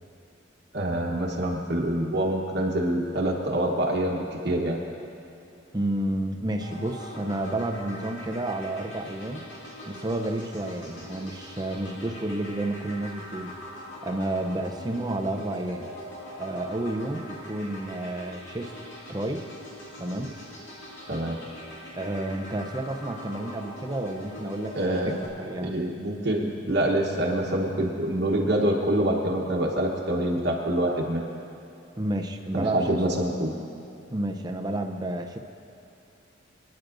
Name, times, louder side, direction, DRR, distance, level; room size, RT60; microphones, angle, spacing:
voice 1, 0.7-4.8 21.1-21.4 24.7-25.2 25.6-31.2 32.5-33.6, right 1 dB, 55° right, -2 dB, 1.2 m, -26 dB
voice 2, 5.7-9.4 9.9-13.5 14.0-15.9 16.4-18.8 19.1-19.5 20.0-20.3 22.0-24.8 25.4-25.8 32.0-33.0 34.1-35.4, right 1 dB, 20° right, 4 dB, 0.7 m, -30 dB
sound 1, 6.6-25.3, equal, 70° left, 2.3 m, -42 dB
23.5 x 10.5 x 2.6 m, 2.8 s
head